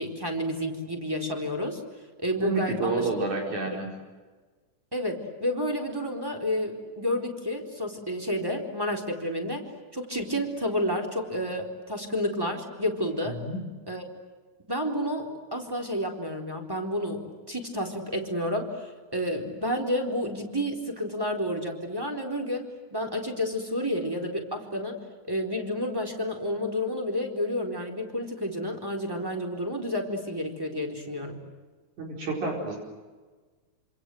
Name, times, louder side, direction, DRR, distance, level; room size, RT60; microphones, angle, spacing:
voice 1, 0.0-1.8 2.2-3.1 4.9-13.4 13.9-14.0 14.7-22.6 22.9-25.0 25.3-31.4, equal, 5° right, 2 dB, 3.8 m, -30 dB
voice 2, 2.4-3.9 13.3-13.6 32.0-32.8, right 3 dB, 70° right, 0 dB, 6.0 m, -29 dB
27.5 x 27.5 x 7.9 m, 1.4 s
omnidirectional pair, 3.5 m